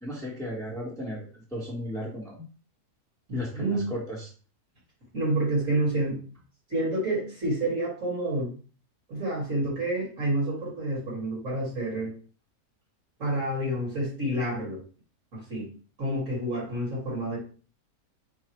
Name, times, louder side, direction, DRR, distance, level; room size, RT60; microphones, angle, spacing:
voice 1, 0.0-2.4 3.3-4.3, equal, ahead, -4 dB, 1.2 m, -35 dB
voice 2, 3.3-3.8 5.1-6.2 6.7-8.5 9.1-12.1 13.2-14.8 15.3-15.7 16.0-17.4, right 1 dB, 55° right, -5 dB, 2.4 m, -28 dB
4.7 x 2.5 x 4.5 m, 0.39 s
omnidirectional pair, 1.7 m